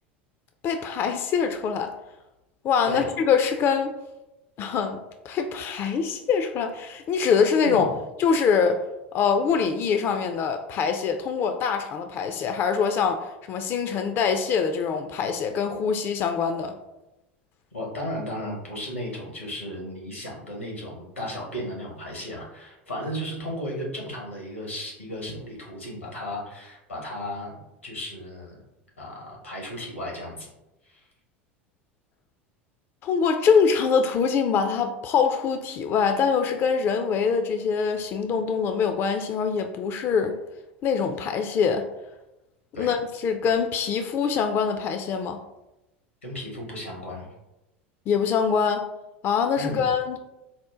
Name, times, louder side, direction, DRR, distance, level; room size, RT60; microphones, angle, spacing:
voice 1, 0.6-1.9 2.6-3.9 4.6-7.9 8.2-8.8 9.1-16.7 33.0-40.4 40.8-41.9 42.8-45.4 48.1-48.9 49.2-50.2, left 6 dB, 35° left, 6 dB, 0.3 m, -24 dB
voice 2, 7.6-8.0 17.7-28.6 29.0-30.5 30.8-31.0 42.7-42.9 46.2-47.3 49.6-49.9, equal, 90° left, -2 dB, 1.2 m, -35 dB
4.2 x 2.1 x 3.6 m, 0.95 s
figure-of-eight pair, 80°, 7 cm